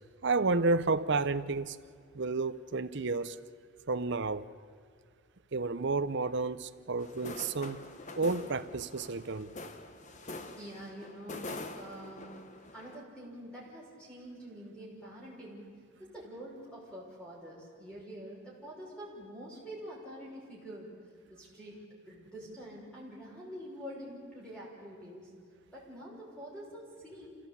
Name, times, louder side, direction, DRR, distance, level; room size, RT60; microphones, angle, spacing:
voice 1, 0.2-1.8 2.1-3.4 3.9-4.5 5.5-7.8 8.2-9.5, right 3 dB, 55° right, 0.7 m, -31 dB
sound 1, 7.0-13.0, left 2 dB, 35° left, 1.2 m, -45 dB
voice 2, 10.6-12.4 12.7-15.7 16.0-20.9 21.3-21.8 22.1-25.3 25.7-27.4, equal, 5° left, 5.9 m, -46 dB
27.5 x 16.0 x 8.6 m
head